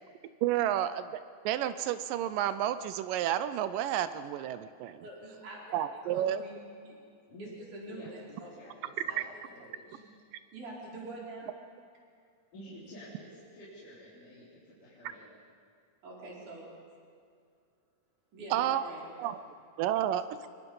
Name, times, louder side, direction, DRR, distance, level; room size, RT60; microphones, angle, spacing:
voice 1, 0.4-5.1 5.7-6.4 9.2-9.3 18.5-18.8 19.2-19.4 19.8-20.5, right 11 dB, 80° right, 12 dB, 2.2 m, -31 dB
voice 2, 5.0-5.8 6.0-6.6 6.8-7.0 7.4-8.5 9.1-9.2 9.9-10.0 10.5-11.5 16.0-16.6 18.3-19.3, right 2 dB, 60° right, -4 dB, 5.8 m, -45 dB
voice 3, 7.9-10.0 12.5-15.3, equal, 60° left, -9 dB, 5.3 m, -50 dB
25.0 x 22.0 x 5.5 m, 2.2 s
omnidirectional pair, 4.1 m